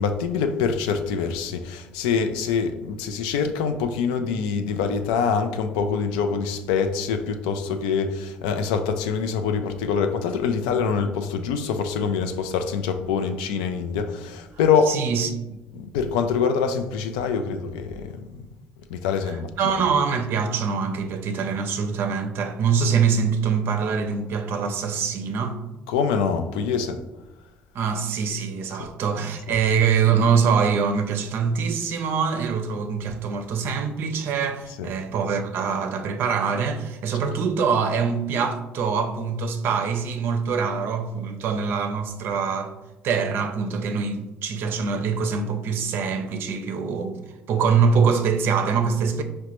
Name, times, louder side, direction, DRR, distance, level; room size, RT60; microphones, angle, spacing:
voice 1, 0.0-14.9 15.8-18.4 18.9-19.5 25.9-27.0 28.8-28.9 34.8-34.9, left 6 dB, 90° left, 0.3 m, -25 dB
voice 2, 14.9-15.6 19.3-25.6 27.7-42.7 43.0-47.2 47.5-49.2, right 6 dB, 65° right, 0.5 m, -24 dB
4.9 x 2.1 x 2.9 m
supercardioid pair, 65°, 4 cm